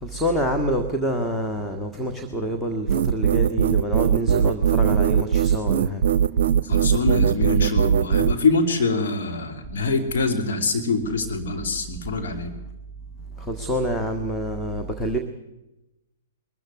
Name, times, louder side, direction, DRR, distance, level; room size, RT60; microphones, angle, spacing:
voice 1, 0.0-6.0 13.5-15.2, equal, 5° left, 4 dB, 1.7 m, -26 dB
sound 1, 2.9-8.3, right 8 dB, 60° right, 0.6 m, -20 dB
voice 2, 6.6-12.5, left 3 dB, 60° left, 4 dB, 3.0 m, -24 dB
21.5 x 14.0 x 9.7 m, 0.96 s
figure-of-eight pair, 115°, 0 cm